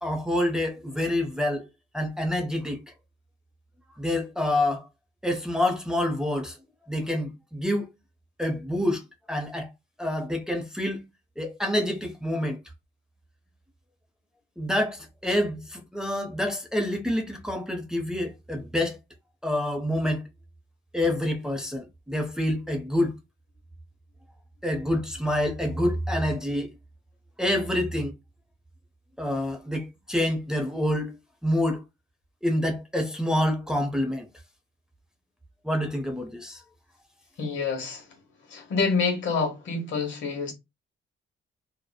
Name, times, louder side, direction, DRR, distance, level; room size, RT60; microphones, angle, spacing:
voice 1, 0.0-1.6 1.9-2.8 4.0-4.8 5.2-6.6 6.9-7.9 8.4-9.7 10.0-11.0 11.4-12.6 14.6-19.0 19.4-20.2 20.9-23.2 24.6-26.7 27.4-28.1 29.2-31.2 31.4-31.8 32.4-34.3 35.6-36.6, left 1 dB, 5° right, 0.6 m, -27 dB
voice 2, 37.4-38.1 38.5-40.5, left 4 dB, 70° left, 1.1 m, -27 dB
2.8 x 2.0 x 2.2 m
cardioid pair, 90°, 20 cm